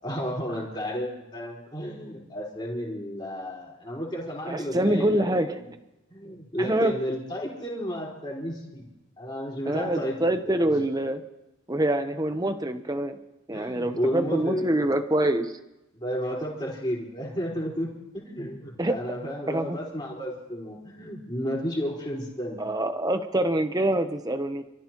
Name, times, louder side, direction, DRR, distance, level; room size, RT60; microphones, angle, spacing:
voice 1, 0.0-5.7 6.1-8.8 9.2-10.7 13.5-14.9 15.9-17.9 18.1-22.6, equal, 20° left, -3 dB, 4.7 m, -32 dB
voice 2, 4.5-5.5 6.6-6.9 9.7-11.2 11.7-13.2 13.5-15.5 18.8-19.0 19.5-19.8 22.6-24.6, right 1 dB, 15° right, 8 dB, 0.9 m, -25 dB
28.5 x 14.5 x 3.0 m, 0.96 s
head